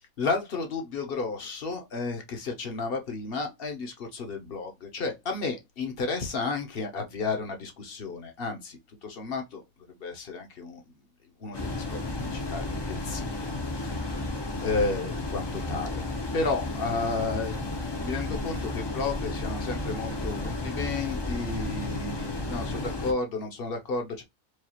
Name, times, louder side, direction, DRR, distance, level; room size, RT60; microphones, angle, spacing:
voice 1, 0.0-9.6 10.0-10.8 11.4-13.3 13.7-14.1 14.6-16.0 16.3-17.7 18.0-24.2, left 3 dB, 50° left, 1.0 m, -32 dB
sound 1, 11.5-23.1, left 2 dB, 25° left, 0.6 m, -33 dB
4.7 x 2.3 x 2.9 m
omnidirectional pair, 1.4 m